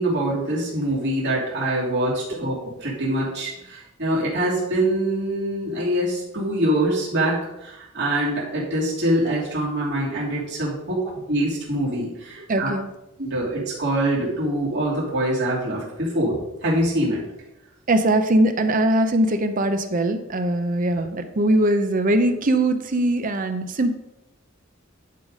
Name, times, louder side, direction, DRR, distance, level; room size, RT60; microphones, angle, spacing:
voice 1, 0.0-2.5 2.8-11.0 11.3-12.7 13.2-17.2, right 1 dB, 60° right, -7 dB, 3.0 m, -24 dB
voice 2, 12.5-12.8 17.9-24.0, right 1 dB, 45° right, 8 dB, 0.7 m, -21 dB
10.5 x 4.1 x 5.0 m, 0.91 s
head